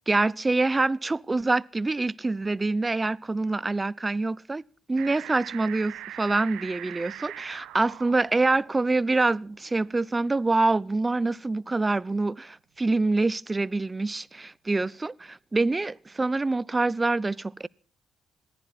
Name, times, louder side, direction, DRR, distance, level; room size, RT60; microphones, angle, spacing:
voice 1, 0.1-4.6 4.9-17.7, right 3 dB, 25° right, 0.7 m, -26 dB
sound 1, 5.0-11.1 11.6-11.7, right 12 dB, 75° right, 1.5 m, -43 dB
20.5 x 15.0 x 4.3 m
hypercardioid pair, 50°, 0 cm